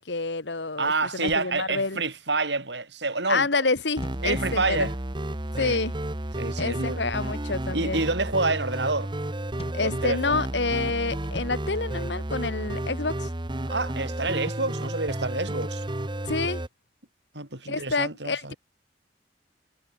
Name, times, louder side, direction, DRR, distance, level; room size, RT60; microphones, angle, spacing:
voice 1, 0.0-2.0 3.3-4.9 5.6-5.9 6.6-8.0 9.7-13.3 16.3-16.6 17.7-18.5, left 3 dB, 80° left, 2.0 m, -28 dB
voice 2, 0.8-3.5 4.2-4.9 5.6-5.8 6.4-7.0 7.7-9.1 9.8-10.4 13.7-15.8 17.3-18.6, right 3 dB, 80° right, 6.5 m, -28 dB
sound 1, 1.3-2.3 4.0-4.8 6.6-7.2 9.6-10.6 11.3-12.8 14.5-16.0, left 1 dB, 35° left, 4.0 m, -46 dB
sound 2, 4.0-16.7, right 1 dB, 25° right, 1.3 m, -32 dB
head